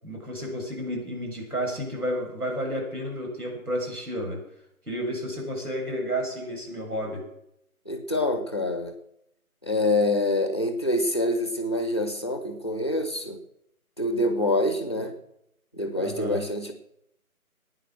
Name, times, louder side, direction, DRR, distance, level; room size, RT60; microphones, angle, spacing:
voice 1, 0.0-4.4 4.9-7.3 15.9-16.4, equal, 85° right, 0 dB, 7.1 m, -31 dB
voice 2, 7.8-9.0 9.6-13.4 14.0-15.2 15.7-16.7, left 1 dB, 20° left, 8 dB, 1.0 m, -26 dB
16.5 x 9.8 x 6.1 m, 0.79 s
figure-of-eight pair, 165°, 44 cm